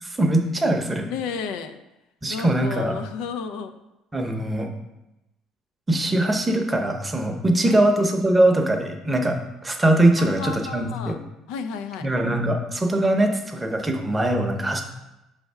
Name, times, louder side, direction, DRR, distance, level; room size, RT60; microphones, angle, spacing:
voice 1, 0.0-1.1 2.2-3.0 4.1-4.7 5.9-9.4 9.6-11.2 12.0-14.8, right 1 dB, 15° right, 3 dB, 0.7 m, -21 dB
voice 2, 1.0-1.8 2.3-3.8 7.7-7.8 10.2-11.2 11.5-12.1, left 6 dB, 85° left, 8 dB, 0.4 m, -32 dB
5.6 x 3.4 x 5.4 m, 0.95 s
cardioid pair, 120°, 0 cm